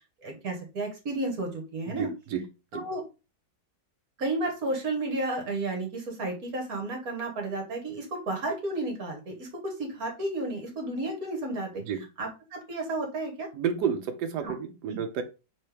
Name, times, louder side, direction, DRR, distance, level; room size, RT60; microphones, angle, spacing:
voice 1, 0.2-2.1 2.7-3.0 4.2-11.8 12.2-13.5 14.4-14.5 14.9-15.0, right 2 dB, 55° right, 1 dB, 1.8 m, -32 dB
voice 2, 2.0-2.5 2.7-2.8 11.9-12.0 13.5-15.2, right 7 dB, 70° right, 7 dB, 1.3 m, -30 dB
4.4 x 3.7 x 3.3 m, 0.30 s
omnidirectional pair, 1.9 m